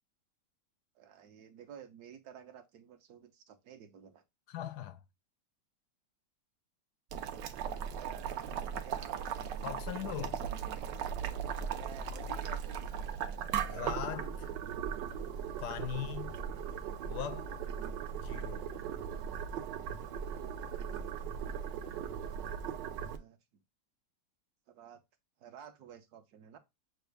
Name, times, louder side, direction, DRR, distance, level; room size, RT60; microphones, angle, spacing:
voice 1, 0.9-4.2 8.0-9.7 10.2-11.1 11.7-13.2 16.0-16.3 17.7-18.1 22.9-23.4 24.7-25.0 25.4-26.6, right 8 dB, 70° right, 1.2 m, -52 dB
voice 2, 4.5-5.0 9.6-10.4 13.7-14.5 15.6-16.3 17.1-17.5 18.2-18.8, left 10 dB, 75° left, 1.1 m, -40 dB
Boiling, 7.1-23.2, right 8 dB, 85° right, 1.3 m, -38 dB
6.9 x 2.3 x 3.3 m
omnidirectional pair, 1.9 m